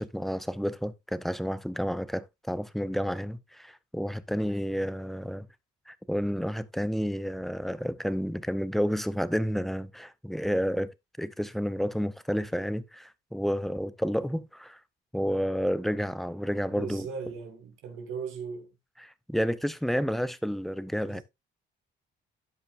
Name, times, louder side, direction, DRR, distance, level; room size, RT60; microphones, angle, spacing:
voice 1, 0.0-5.5 5.9-10.9 11.2-14.8 15.1-17.1 19.0-21.2, equal, ahead, 0.6 m, -30 dB
voice 2, 16.7-18.8 21.1-21.2, right 5 dB, 85° right, 2.4 m, -38 dB
13.5 x 5.3 x 2.5 m
cardioid pair, 90°, 20 cm